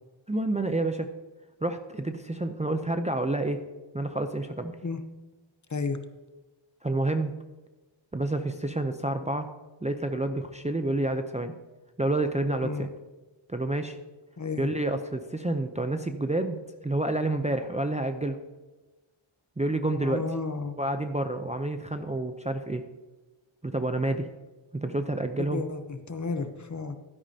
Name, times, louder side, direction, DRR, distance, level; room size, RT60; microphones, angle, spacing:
voice 1, 0.3-1.1 1.6-3.6 3.9-4.8 6.8-7.3 8.1-9.5 9.8-11.5 12.0-12.9 13.5-14.0 14.6-18.4 19.6-20.2 20.8-22.9 23.6-24.3 24.7-25.6, right 2 dB, 15° right, 7 dB, 0.5 m, -29 dB
voice 2, 14.4-14.7 19.9-20.7 25.4-27.0, left 4 dB, 35° left, 9 dB, 0.8 m, -32 dB
12.5 x 10.5 x 2.8 m, 1.2 s
wide cardioid pair, 95°, 49 cm